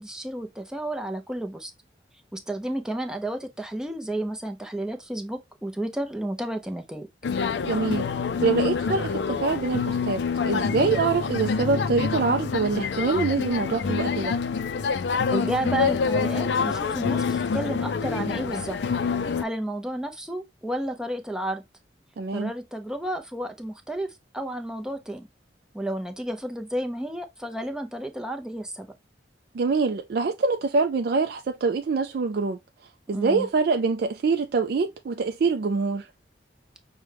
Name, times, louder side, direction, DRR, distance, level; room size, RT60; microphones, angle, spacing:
voice 1, 0.0-1.7 2.3-7.1 15.3-18.8 19.4-21.6 22.3-25.3 25.7-28.9 33.1-33.5, right 1 dB, 5° right, 0.5 m, -31 dB
sound 1, 7.2-19.4, left 5 dB, 70° left, 0.4 m, -26 dB
voice 2, 7.6-8.1 8.4-14.4 22.2-22.5 29.5-32.6 33.1-36.1, right 4 dB, 55° right, 0.3 m, -25 dB
6.0 x 2.2 x 3.3 m
head